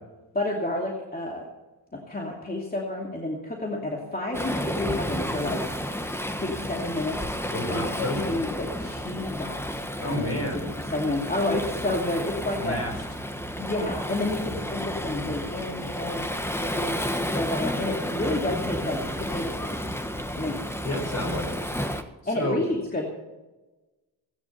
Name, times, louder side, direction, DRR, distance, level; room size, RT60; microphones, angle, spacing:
voice 1, 0.3-1.4 1.9-5.6 6.3-7.2 7.7-9.8 10.0-10.3 10.5-12.8 13.6-19.8 20.3-20.6 22.3-23.1, left 2 dB, 20° left, -1 dB, 2.6 m, -30 dB
Waves surf, 4.3-22.0, equal, 5° left, 1.4 m, -31 dB
voice 2, 7.5-8.4 10.0-10.7 12.6-13.0 20.8-21.6 21.9-22.6, left 1 dB, 35° left, 4 dB, 5.2 m, -31 dB
16.5 x 9.4 x 5.6 m, 1.1 s
cardioid pair, 75°, 42 cm